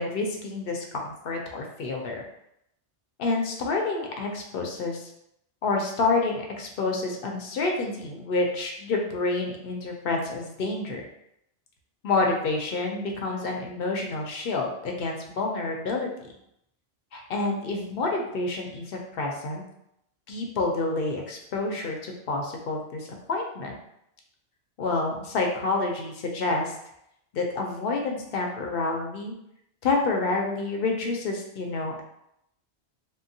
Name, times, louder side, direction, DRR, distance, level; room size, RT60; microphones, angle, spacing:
voice 1, 0.0-2.2 3.2-5.1 5.6-11.0 12.0-16.1 17.1-19.6 20.3-23.7 24.8-26.7 27.3-29.3 29.8-32.0, left 3 dB, 65° left, 1 dB, 0.7 m, -28 dB
3.7 x 2.0 x 2.6 m, 0.78 s
omnidirectional pair, 1.2 m